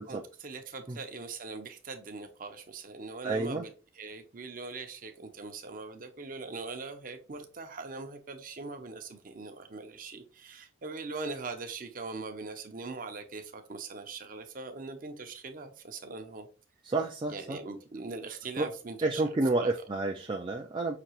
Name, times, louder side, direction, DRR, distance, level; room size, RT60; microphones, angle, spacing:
voice 1, 0.0-3.7 4.0-16.5 17.3-19.2 19.6-19.7, right 3 dB, 45° right, 7 dB, 0.7 m, -41 dB
voice 2, 3.2-3.6 16.8-17.6 18.6-18.7 19.0-21.0, right 2 dB, 25° right, 2 dB, 0.3 m, -30 dB
5.9 x 2.9 x 2.9 m, 0.35 s
head